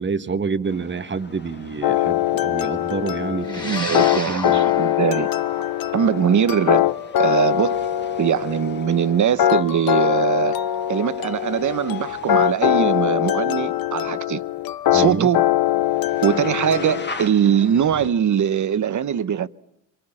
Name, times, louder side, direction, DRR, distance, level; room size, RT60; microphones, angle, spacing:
voice 1, 0.0-4.8 14.9-15.3, right 5 dB, 30° right, 1.3 m, -28 dB
sound 1, 0.6-18.1, left 4 dB, 30° left, 1.9 m, -43 dB
sound 2, 1.8-17.1, left 12 dB, 75° left, 1.0 m, -22 dB
sound 3, 3.4-12.0, left 2 dB, 10° left, 2.8 m, -36 dB
voice 2, 3.5-5.3 5.9-6.9 7.2-7.9 8.2-10.5 10.9-14.4 14.9-15.5 16.2-19.5, right 8 dB, 55° right, 1.0 m, -21 dB
26.5 x 23.0 x 8.8 m
wide cardioid pair, 125°, 35 cm